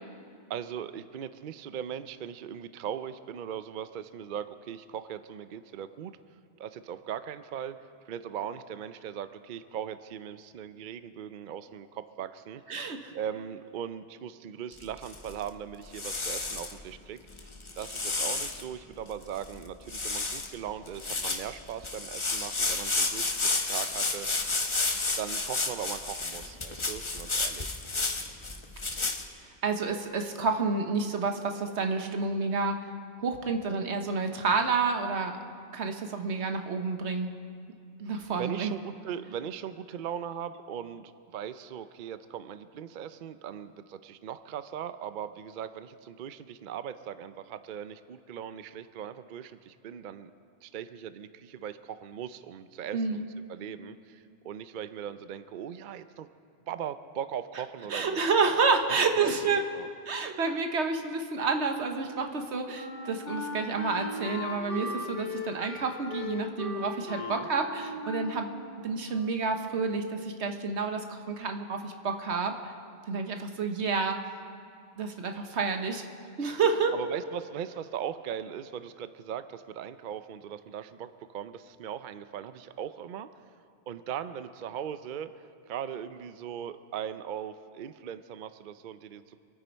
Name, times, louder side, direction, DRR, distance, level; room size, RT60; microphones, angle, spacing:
voice 1, 0.5-6.2 6.6-7.8 8.1-24.3 25.2-27.8 36.4-36.5 38.2-50.3 50.6-56.3 56.7-58.3 59.2-59.3 59.7-59.9 67.2-67.5 76.9-83.3 83.9-89.4, right 9 dB, 55° right, 12 dB, 0.6 m, -39 dB
voice 2, 12.7-13.1 29.6-32.9 33.2-35.4 35.7-37.3 38.0-38.7 52.9-53.2 57.9-59.6 60.1-68.5 68.8-72.7 73.1-74.2 75.0-76.0 76.4-76.9, right 4 dB, 80° right, 5 dB, 1.3 m, -29 dB
sound 1, 14.7-15.5 15.9-16.7 17.4-18.6 19.1-19.2 19.4-19.6 19.9-20.5 20.9-29.2, left 3 dB, 30° left, 0.9 m, -31 dB
Wind instrument woodwind instrument, 62.3-69.6, left 4 dB, 55° left, 2.4 m, -38 dB
26.5 x 9.3 x 4.5 m, 2.4 s
omnidirectional pair, 1.1 m